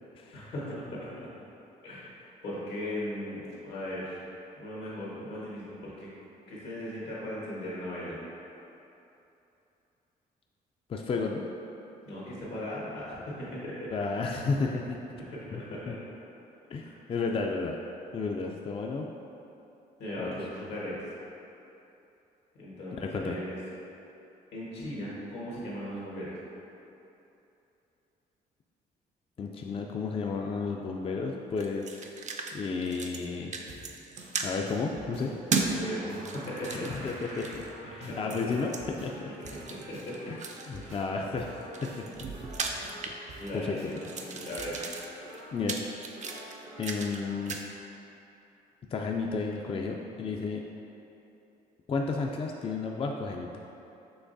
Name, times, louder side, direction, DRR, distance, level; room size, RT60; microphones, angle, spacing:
voice 1, 0.3-1.1 1.8-4.2 4.5-6.1 6.5-8.2 12.0-13.9 15.2-15.9 16.8-17.0 20.0-21.1 22.6-23.6 24.5-26.3 35.6-36.9 37.9-38.4 39.4-40.2 40.8-41.0 43.4-44.8, left 1 dB, 80° left, -6 dB, 1.4 m, -38 dB
voice 2, 10.9-11.4 13.9-15.0 15.5-15.6 15.9-16.0 16.7-17.8 18.1-19.1 20.2-20.4 23.0-23.4 29.4-31.9 32.5-33.5 34.4-35.3 36.6-37.6 37.9-39.3 40.3-42.2 43.1-43.9 45.5-45.9 46.8-47.6 48.9-50.6 51.9-53.5, left 4 dB, 35° left, 1 dB, 0.3 m, -32 dB
sound 1, 31.6-32.5 32.8-33.3 33.5-34.5 35.5-35.7 36.1-37.7 38.3-38.8 39.4-40.8 41.5-43.6 43.9-47.2 47.5-47.7, right 4 dB, 45° right, 0.4 m, -36 dB
sound 2, 33.7-47.5, right 1 dB, 85° right, 0.8 m, -47 dB
5.9 x 3.2 x 2.6 m, 2.9 s
supercardioid pair, 65°, 17 cm